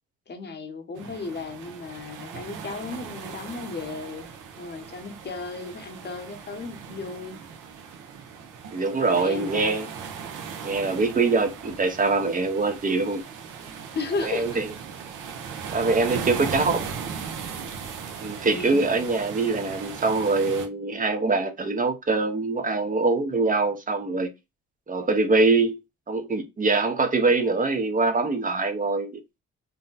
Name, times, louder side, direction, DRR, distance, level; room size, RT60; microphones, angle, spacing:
voice 1, 0.3-7.4 9.1-9.8 13.9-14.6 18.4-18.9, left 4 dB, 35° left, 0.9 m, -35 dB
sound 1, 1.0-20.7, right 6 dB, 85° right, 0.7 m, -38 dB
voice 2, 8.7-9.9 10.6-13.2 14.2-14.7 15.7-16.9 18.2-24.3 24.9-25.8 26.1-29.2, right 3 dB, 25° right, 0.6 m, -23 dB
2.7 x 2.1 x 3.8 m
cardioid pair, 90°, 30 cm